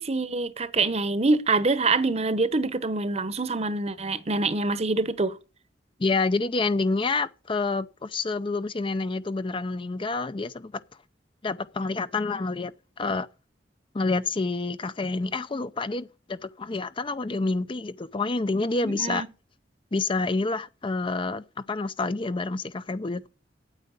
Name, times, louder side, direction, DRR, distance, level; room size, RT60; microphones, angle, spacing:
voice 1, 0.0-5.4 18.8-19.3, right 3 dB, 35° right, 1.0 m, -25 dB
voice 2, 6.0-10.7 11.4-13.3 13.9-19.3 19.9-23.3, left 3 dB, 30° left, 0.6 m, -28 dB
9.1 x 8.6 x 8.3 m
head